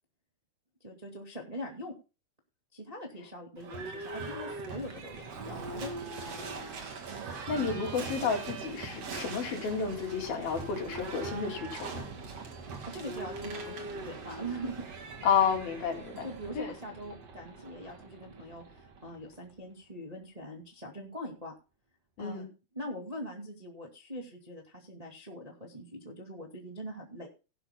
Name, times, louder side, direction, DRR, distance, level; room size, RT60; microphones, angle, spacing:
voice 1, 0.8-1.9 2.7-6.6 7.5-7.9 12.9-14.9 16.2-21.5 22.2-22.5 22.7-27.3, equal, 15° right, 1 dB, 1.4 m, -42 dB
Livestock farm animals working animals / Bell, 3.6-19.4, right 3 dB, 45° right, 2.7 m, -41 dB
voice 2, 7.5-12.1 15.2-16.3 16.6-16.7 22.2-22.5, left 6 dB, 70° left, 2 dB, 4.4 m, -31 dB
18.0 x 11.5 x 2.2 m, 0.31 s
omnidirectional pair, 4.4 m